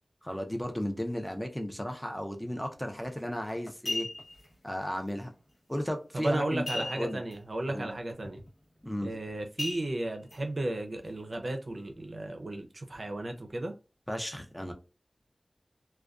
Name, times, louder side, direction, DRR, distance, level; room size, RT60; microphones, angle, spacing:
voice 1, 0.2-4.1 4.6-5.3 5.7-7.2 7.7-7.9 8.8-9.1 14.1-14.7, equal, 10° left, 0.5 m, -34 dB
sound 1, 3.0-3.2 3.7-4.5 6.7-7.3 7.7-7.8 8.2-8.5 9.6-10.4 10.9-11.0, left 2 dB, 70° left, 1.0 m, -36 dB
voice 2, 6.1-8.4 9.0-13.7, right 1 dB, 60° right, 0.5 m, -34 dB
2.4 x 2.2 x 2.3 m
wide cardioid pair, 45°, 0 cm